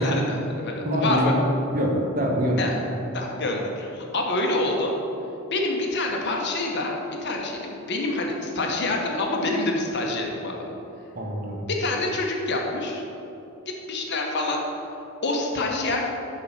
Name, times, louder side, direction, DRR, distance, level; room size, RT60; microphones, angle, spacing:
voice 1, 0.0-1.3 2.6-2.7 3.1-4.9 5.5-6.9 7.2-10.6 11.7-13.0 13.7-14.6 15.2-16.0, left 2 dB, 55° left, 0 dB, 1.1 m, -26 dB
voice 2, 0.8-1.4 1.7-2.7 11.1-11.7, equal, 40° right, -1 dB, 1.3 m, -24 dB
10.5 x 4.1 x 5.6 m, 2.8 s
head